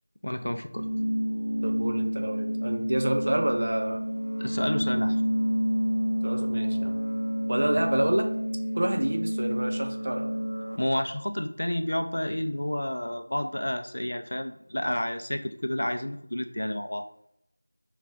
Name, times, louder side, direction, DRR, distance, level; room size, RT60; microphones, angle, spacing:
voice 1, 0.2-0.9 4.4-5.2 10.8-17.0, left 1 dB, 70° left, 7 dB, 0.4 m, -30 dB
sound 1, 0.8-10.8, equal, 90° right, 0.6 m, -29 dB
voice 2, 1.6-4.0 6.2-6.9 7.5-8.3 8.7-10.3, right 1 dB, 45° right, 4 dB, 0.4 m, -28 dB
3.4 x 2.3 x 3.5 m, 0.77 s
figure-of-eight pair, 175°, 0 cm